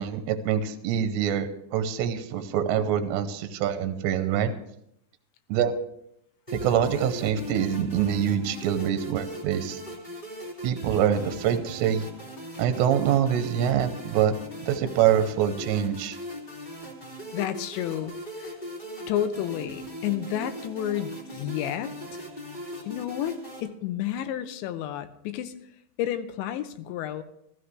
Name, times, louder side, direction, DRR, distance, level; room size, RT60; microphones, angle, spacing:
voice 1, 0.0-4.5 5.5-5.8 6.5-9.8 10.6-12.1 12.6-14.3 14.6-16.2, right 9 dB, 80° right, 9 dB, 2.9 m, -25 dB
sound 1, 6.5-23.6, equal, 20° left, 1.3 m, -40 dB
voice 2, 17.3-18.6 19.1-21.9 22.9-25.5 26.0-27.2, left 11 dB, 80° left, 10 dB, 3.0 m, -31 dB
16.0 x 14.5 x 3.2 m, 0.75 s
omnidirectional pair, 5.2 m